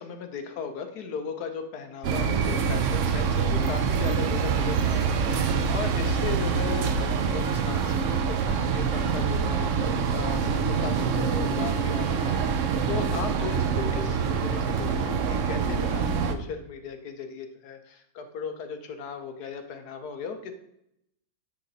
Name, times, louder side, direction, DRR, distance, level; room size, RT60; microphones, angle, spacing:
voice 1, 0.0-16.0 16.3-20.5, left 5 dB, 60° left, 6 dB, 1.3 m, -37 dB
sound 1, 2.0-16.3, right 6 dB, 80° right, 0.6 m, -25 dB
9.8 x 3.9 x 4.0 m, 0.77 s
omnidirectional pair, 2.0 m